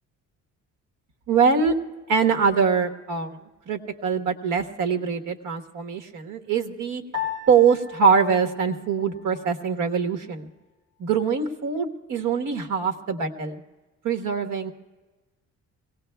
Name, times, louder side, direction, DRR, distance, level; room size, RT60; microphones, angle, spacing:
voice 1, 1.3-1.7 2.1-3.4 3.7-7.0 7.5-10.5 11.0-13.6 14.0-14.7, right 6 dB, 80° right, 6 dB, 1.3 m, -23 dB
Piano, 7.1-9.7, left 8 dB, 40° right, 3.4 m, -36 dB
24.5 x 18.0 x 2.3 m, 1.2 s
cardioid pair, 175°, 30 cm